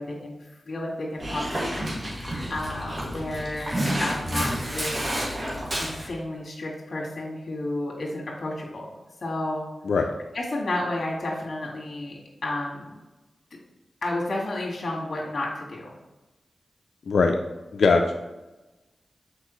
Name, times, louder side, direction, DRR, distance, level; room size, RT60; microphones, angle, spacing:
voice 1, 0.0-4.9 5.8-8.9 9.2-9.7 10.3-13.0 14.0-16.0, left 1 dB, 60° left, -2 dB, 1.9 m, -32 dB
Dog, 1.2-6.1, equal, 40° right, 2.0 m, -30 dB
voice 2, 17.1-17.4 17.7-18.1, left 4 dB, 85° left, 3 dB, 0.4 m, -20 dB
6.6 x 4.6 x 3.1 m, 1.1 s
cardioid pair, 55°, 0 cm